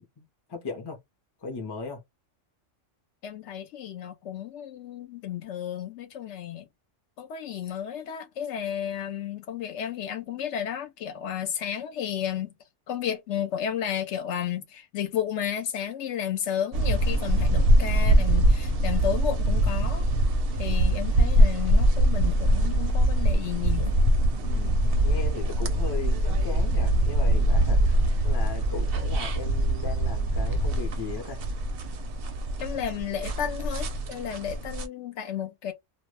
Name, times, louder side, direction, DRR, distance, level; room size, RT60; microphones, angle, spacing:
voice 1, 0.2-1.0 1.4-2.0 24.4-28.0 28.2-31.4, left 4 dB, 30° left, 0.4 m, -37 dB
voice 2, 3.2-6.7 7.2-12.5 12.9-20.1 20.6-24.0 32.6-35.7, left 9 dB, 70° left, 0.8 m, -32 dB
sound 1, 16.7-34.9, right 1 dB, 60° right, 0.6 m, -23 dB
2.2 x 2.1 x 3.1 m
omnidirectional pair, 1.3 m